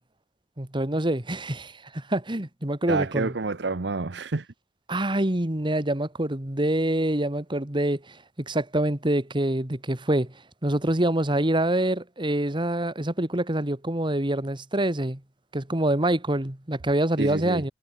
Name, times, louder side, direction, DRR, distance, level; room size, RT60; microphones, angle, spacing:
voice 1, 0.6-3.3 4.9-10.3 10.6-15.2 15.5-17.7, right 1 dB, 25° right, 2.0 m, -26 dB
voice 2, 2.9-4.5 17.2-17.6, right 3 dB, 70° right, 0.8 m, -28 dB
head